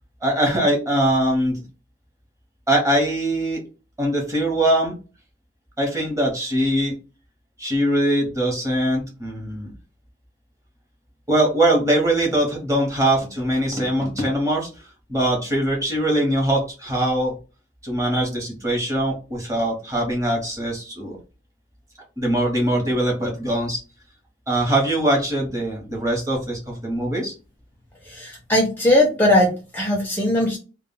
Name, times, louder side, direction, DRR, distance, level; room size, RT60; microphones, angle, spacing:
voice 1, 0.2-1.6 2.7-3.6 4.0-4.9 5.8-7.0 7.6-9.7 11.3-14.7 15.1-17.3 17.8-21.2 22.2-23.8 24.5-27.3, right 1 dB, 15° right, 0 dB, 0.7 m, -22 dB
voice 2, 28.1-30.6, left 1 dB, 10° left, -1 dB, 0.4 m, -19 dB
2.0 x 2.0 x 3.7 m, 0.33 s
head